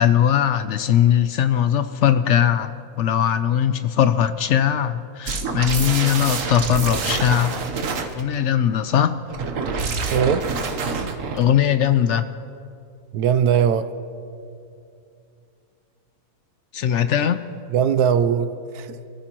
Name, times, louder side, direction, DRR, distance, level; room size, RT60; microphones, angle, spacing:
voice 1, 0.0-7.5 8.2-9.2 11.3-12.3 16.7-17.4, left 9 dB, 70° left, 11 dB, 0.7 m, -20 dB
sound 1, 5.3-8.2 9.3-11.5, right 4 dB, 60° right, 1.3 m, -26 dB
voice 2, 10.1-10.5 13.1-13.9 17.7-19.0, right 8 dB, 80° right, 12 dB, 1.1 m, -20 dB
27.0 x 14.0 x 3.0 m, 2.5 s
omnidirectional pair, 1.7 m